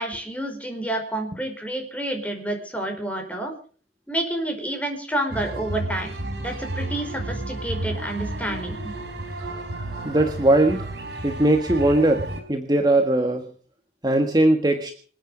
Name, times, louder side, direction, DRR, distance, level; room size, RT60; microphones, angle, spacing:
voice 1, 0.0-3.5 4.1-6.1 6.4-8.9, right 1 dB, 10° left, 4 dB, 4.9 m, -29 dB
sound 1, 5.3-12.4, right 1 dB, 75° right, 5.3 m, -32 dB
voice 2, 9.4-10.9 11.2-13.4 14.0-14.9, right 1 dB, 25° right, 4 dB, 1.6 m, -20 dB
26.5 x 9.2 x 5.1 m, 0.43 s
head